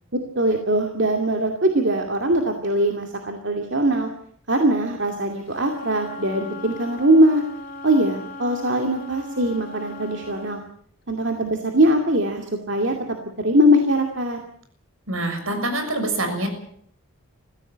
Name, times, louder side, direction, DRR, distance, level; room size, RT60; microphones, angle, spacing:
voice 1, 0.4-4.1 4.5-7.4 7.8-10.6 11.1-12.9 13.4-14.4, right 1 dB, 55° right, 3 dB, 2.4 m, -21 dB
Wind instrument woodwind instrument, 5.5-10.6, left 1 dB, 40° left, 4.7 m, -38 dB
voice 2, 15.1-16.5, right 1 dB, 75° right, 6 dB, 6.7 m, -25 dB
23.0 x 15.5 x 8.7 m, 0.64 s
head